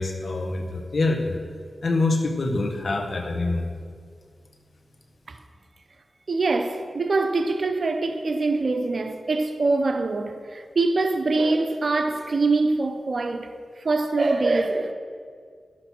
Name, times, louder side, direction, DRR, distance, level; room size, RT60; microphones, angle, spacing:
voice 1, 0.0-1.4 1.8-3.7, left 2 dB, 65° left, 1.5 m, -25 dB
voice 2, 6.3-13.5 13.8-14.9, right 3 dB, 60° right, 1.0 m, -24 dB
12.0 x 7.6 x 6.2 m
cardioid pair, 45°, 0 cm